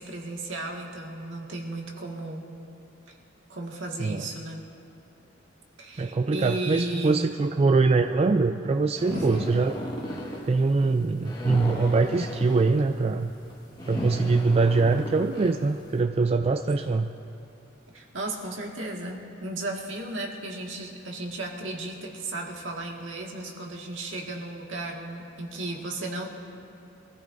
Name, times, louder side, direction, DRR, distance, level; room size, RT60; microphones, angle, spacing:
voice 1, 0.0-2.4 3.5-4.6 5.8-7.3 9.1-9.4 17.9-26.3, right 2 dB, 70° right, 0 dB, 1.8 m, -35 dB
voice 2, 6.0-9.7 10.4-13.3 13.9-17.1, right 3 dB, 30° right, 6 dB, 0.3 m, -23 dB
sound 1, 8.9-15.9, equal, 20° left, 1.6 m, -35 dB
25.0 x 15.0 x 2.6 m, 2.7 s
head